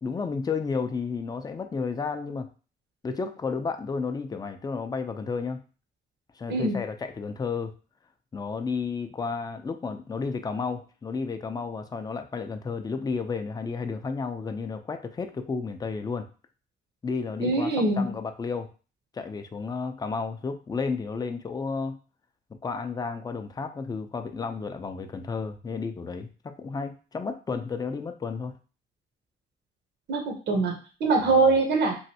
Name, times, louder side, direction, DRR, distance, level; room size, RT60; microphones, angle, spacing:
voice 1, 0.0-2.5 3.0-5.6 6.4-7.7 8.3-16.3 17.0-18.7 19.1-22.0 22.6-28.6 31.3-31.4, left 4 dB, 20° left, 7 dB, 0.4 m, -32 dB
voice 2, 17.4-18.1 30.1-32.0, right 3 dB, 60° right, 2 dB, 0.8 m, -23 dB
3.1 x 2.5 x 2.7 m, 0.35 s
cardioid pair, 90°, 20 cm